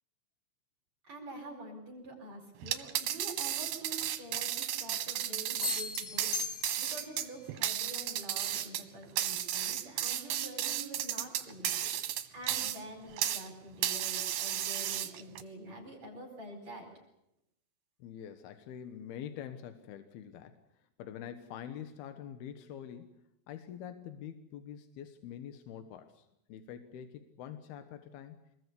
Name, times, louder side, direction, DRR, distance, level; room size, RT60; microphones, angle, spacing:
voice 1, 1.0-16.9, right 1 dB, 45° right, 1 dB, 5.9 m, -47 dB
sound 1, 2.6-13.5 13.8-15.4, right 11 dB, 75° right, 3.1 m, -34 dB
sound 2, 5.6-7.2, left 5 dB, 50° left, 1.3 m, -38 dB
voice 2, 18.0-20.6 21.0-23.1 23.5-28.4, left 9 dB, 85° left, 8 dB, 3.2 m, -45 dB
25.0 x 21.0 x 8.3 m, 0.83 s
omnidirectional pair, 4.4 m